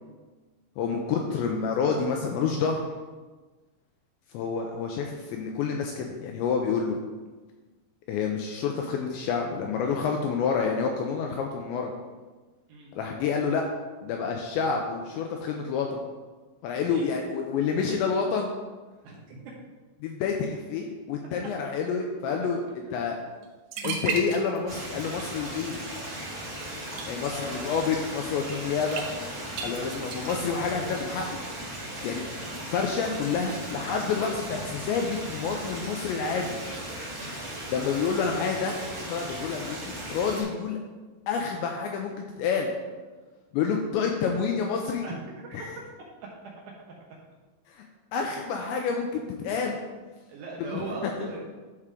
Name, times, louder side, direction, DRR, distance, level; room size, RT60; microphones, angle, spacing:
voice 1, 0.8-2.8 4.3-7.0 8.1-11.9 12.9-13.6 14.0-16.0 16.6-18.5 20.0-22.6 22.9-23.2 23.8-25.8 27.1-29.0 29.6-31.4 32.0-32.2 32.7-36.5 37.7-40.8 41.3-42.1 42.4-42.7 43.5-45.0 45.5-45.7 47.8-47.9 48.1-49.8 50.6-50.8, left 5 dB, 85° left, 2 dB, 2.6 m, -28 dB
voice 2, 12.7-13.1 16.7-17.0 19.0-19.5 21.8-23.1 25.8-26.2 27.2-27.9 28.9-29.0 29.6-30.2 37.2-37.9 43.1-43.3 45.0-45.6 50.3-51.4, right 3 dB, 75° right, -2 dB, 2.7 m, -42 dB
sound 1, 23.4-23.5 23.7-24.8 25.1-25.5 26.8-27.1 28.9-29.1 29.6-30.6, right 5 dB, 90° right, 3.4 m, -33 dB
Stream, 24.7-40.4, right 1 dB, 50° right, 1.0 m, -37 dB
11.0 x 4.8 x 3.7 m, 1.3 s
omnidirectional pair, 5.7 m